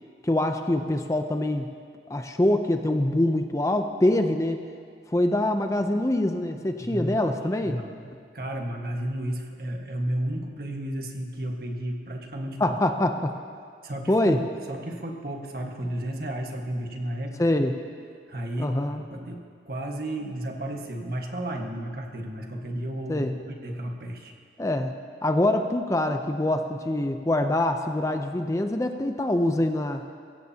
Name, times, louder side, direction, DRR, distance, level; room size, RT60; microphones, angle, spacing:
voice 1, 0.2-1.7 2.1-4.6 5.1-7.8 12.6-13.4 14.1-14.4 17.4-17.7 18.6-19.0 23.1-23.3 24.6-24.9 25.2-30.0, left 1 dB, 20° left, 6 dB, 0.6 m, -24 dB
voice 2, 6.8-7.2 7.6-12.6 13.8-17.4 18.3-18.7 19.1-24.3, right 1 dB, 55° right, 2 dB, 1.5 m, -33 dB
23.0 x 16.0 x 2.9 m, 2.2 s
head